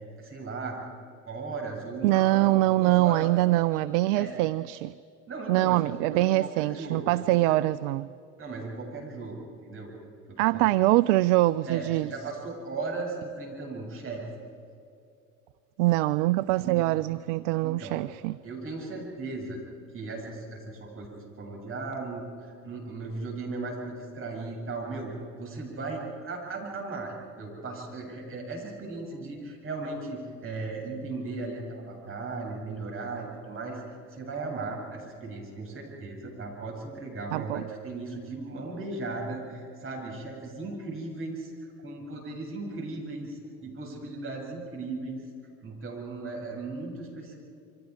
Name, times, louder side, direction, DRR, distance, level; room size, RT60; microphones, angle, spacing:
voice 1, 0.2-0.8 1.3-4.3 5.3-7.6 8.4-9.4 9.6-9.9 10.3-10.7 11.7-14.2 16.6-17.0 17.6-18.0 18.4-19.6 19.9-25.1 25.4-33.8 34.1-45.2 45.6-47.3, right 3 dB, 30° right, 7.9 m, -37 dB
voice 2, 2.0-4.9 5.5-8.1 10.4-12.1 15.8-18.4 37.3-37.6, right 18 dB, 55° right, 0.5 m, -24 dB
28.5 x 24.5 x 4.9 m
figure-of-eight pair, 70°, 45 cm